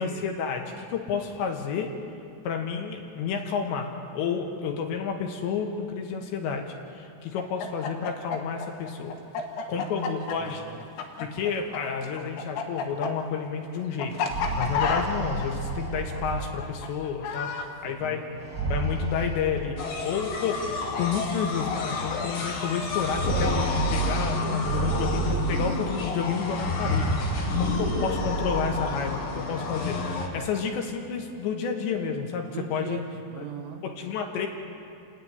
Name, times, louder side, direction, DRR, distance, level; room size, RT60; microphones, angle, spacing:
voice 1, 0.0-1.9 2.4-3.9 4.2-6.6 6.9-9.2 9.7-10.6 11.2-14.1 14.6-18.2 18.7-19.8 20.0-33.0 33.4-33.5 33.8-34.5, left 6 dB, 70° left, 3 dB, 3.4 m, -30 dB
Chicken rooster, 7.4-11.8 12.0-17.7, left 5 dB, 90° left, 4.0 m, -30 dB
voice 2, 9.4-10.8 17.4-18.5 32.5-33.9, right 9 dB, 75° right, 4 dB, 2.9 m, -41 dB
sound 1, 14.2-17.0 18.3-20.0 21.0-21.1 21.5-21.6 22.8-26.0 26.5-29.1, right 3 dB, 10° right, 0.7 m, -30 dB
sound 2, 19.8-30.3, left 4 dB, 55° left, 3.1 m, -31 dB
28.5 x 10.5 x 9.5 m, 2.5 s
omnidirectional pair, 5.7 m